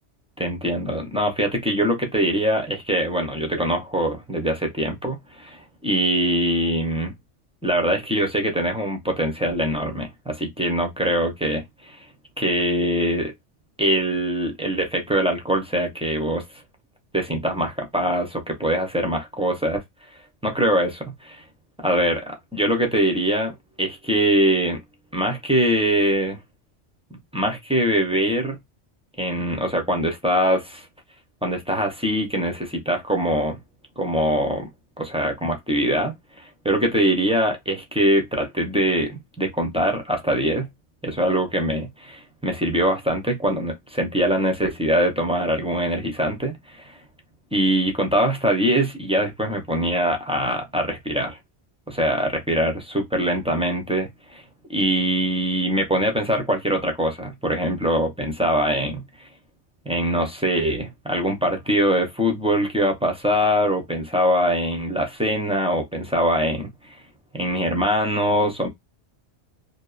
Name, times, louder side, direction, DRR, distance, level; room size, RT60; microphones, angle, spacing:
voice 1, 0.4-7.1 7.6-12.1 12.4-13.3 13.8-16.4 17.1-19.8 20.4-21.4 21.8-23.5 23.8-24.8 25.1-26.4 27.3-28.6 29.2-30.9 31.4-33.6 34.0-34.7 35.0-40.7 41.0-47.0 47.5-51.4 51.9-54.4 54.7-59.0 59.9-67.0 67.3-68.7, equal, 10° right, 0.4 m, -23 dB
2.8 x 2.0 x 2.3 m
omnidirectional pair, 1.2 m